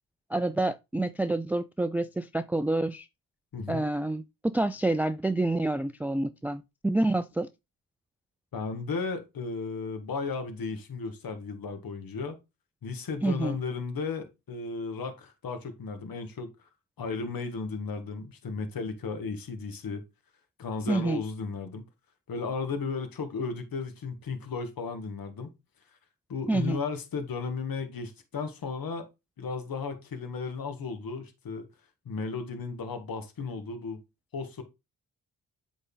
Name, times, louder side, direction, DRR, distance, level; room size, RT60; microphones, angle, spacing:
voice 1, 0.3-3.1 3.7-7.5 13.2-13.6 20.9-21.2 26.5-26.8, right 2 dB, 5° right, 0.4 m, -28 dB
voice 2, 3.5-3.8 8.5-12.4 12.8-16.5 17.0-20.0 20.6-21.9 22.3-25.5 26.3-29.1 29.4-31.7 32.1-34.0 34.3-34.6, left 4 dB, 60° left, 1.8 m, -34 dB
8.1 x 4.1 x 3.8 m
supercardioid pair, 50°, 40 cm